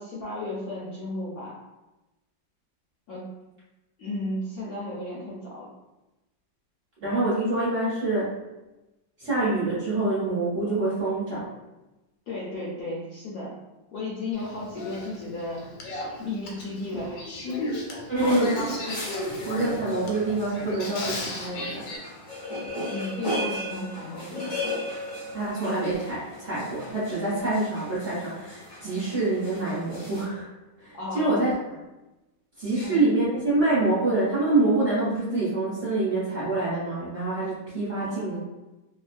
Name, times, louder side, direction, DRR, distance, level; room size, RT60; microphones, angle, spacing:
voice 1, 0.0-1.6 3.1-3.3 4.0-5.7 12.3-13.6 13.9-15.7 16.2-17.9 18.4-18.5 22.7-24.5 30.9-31.5 32.8-33.0 38.0-38.4, left 2 dB, 65° left, -6 dB, 0.9 m, -34 dB
voice 2, 7.0-8.3 9.2-11.5 18.1-18.8 19.4-22.0 25.3-30.5 30.8-31.5 32.6-38.4, right 2 dB, 50° right, -9 dB, 0.9 m, -26 dB
Male speech man speaking / Female speech woman speaking / Conversation, 14.3-22.0, left 2 dB, 85° left, 1.3 m, -35 dB
sound 1, 18.2-30.3, left 1 dB, 35° left, 0.5 m, -37 dB
3.0 x 2.0 x 2.5 m, 1.0 s
omnidirectional pair, 2.0 m